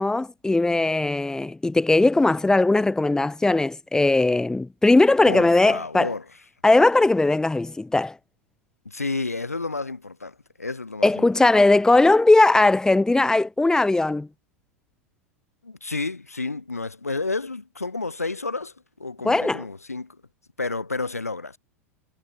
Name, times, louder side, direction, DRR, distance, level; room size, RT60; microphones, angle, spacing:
voice 1, 0.0-6.1 6.6-8.1 11.0-14.3 19.2-19.6, left 2 dB, 10° left, 5.9 m, -19 dB
voice 2, 5.3-6.3 8.8-11.6 15.6-20.2 20.6-21.6, left 3 dB, 85° left, 5.1 m, -31 dB
figure-of-eight pair, 85°, 8 cm